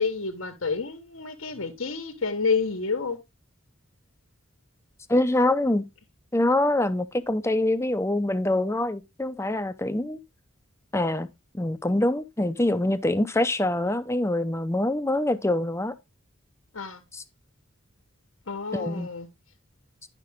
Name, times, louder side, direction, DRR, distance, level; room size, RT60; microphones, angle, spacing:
voice 1, 0.0-3.2 16.7-17.0 18.5-19.3, left 4 dB, 75° left, 1.4 m, -29 dB
voice 2, 5.1-5.8 6.3-10.2 10.9-11.3 11.5-15.9 17.1-17.2 18.7-19.1, left 1 dB, 15° left, 0.6 m, -25 dB
11.0 x 6.0 x 3.6 m
head